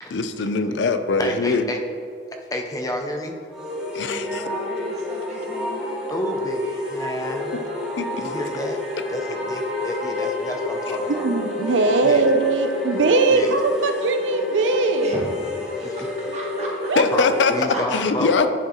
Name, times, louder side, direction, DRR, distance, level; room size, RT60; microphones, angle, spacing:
voice 1, 0.1-1.7 3.9-4.4 8.0-8.3 17.0-17.5 17.9-18.5, left 4 dB, 80° left, 9 dB, 0.5 m, -22 dB
voice 2, 1.2-1.8 2.5-3.4 6.1-7.7 8.2-8.8 9.1-11.3 12.0-12.3 13.3-13.5 15.8-16.0 17.1-18.4, left 1 dB, 20° left, 3 dB, 0.5 m, -30 dB
sound 1, 3.5-17.7, left 2 dB, 5° right, 1.2 m, -29 dB
voice 3, 4.1-5.8 15.0-16.9 17.7-18.5, equal, 35° right, -4 dB, 1.5 m, -35 dB
voice 4, 11.1-15.1 16.9-17.0, right 3 dB, 85° right, 7 dB, 0.5 m, -20 dB
10.0 x 4.6 x 3.0 m, 2.2 s
head